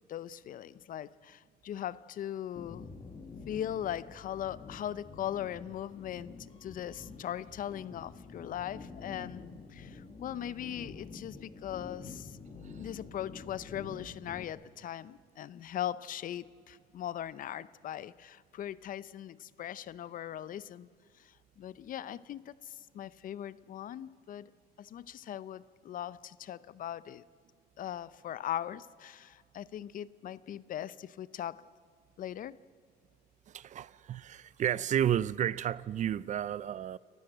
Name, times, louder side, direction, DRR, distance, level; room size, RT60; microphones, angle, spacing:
voice 1, 0.1-2.9 3.5-12.4 12.8-20.9 21.2-24.5 24.8-27.2 27.8-31.6 32.2-32.6, left 11 dB, 55° left, 0.7 m, -40 dB
sound 1, 2.6-14.4, left 4 dB, 35° left, 1.8 m, -48 dB
voice 2, 33.5-37.0, right 10 dB, 45° right, 0.5 m, -32 dB
28.5 x 15.0 x 7.9 m
cardioid pair, 110°, 17 cm